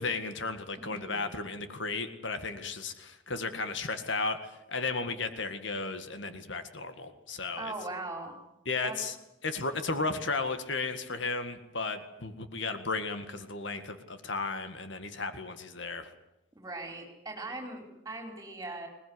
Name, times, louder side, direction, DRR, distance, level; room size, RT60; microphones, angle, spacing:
voice 1, 0.0-7.7 8.7-9.2 9.4-16.1, left 3 dB, 65° left, 8 dB, 2.0 m, -34 dB
voice 2, 0.8-1.2 7.6-8.4 8.8-9.0 16.6-18.9, right 2 dB, 15° right, 3 dB, 4.8 m, -40 dB
21.0 x 20.0 x 9.7 m, 0.88 s
head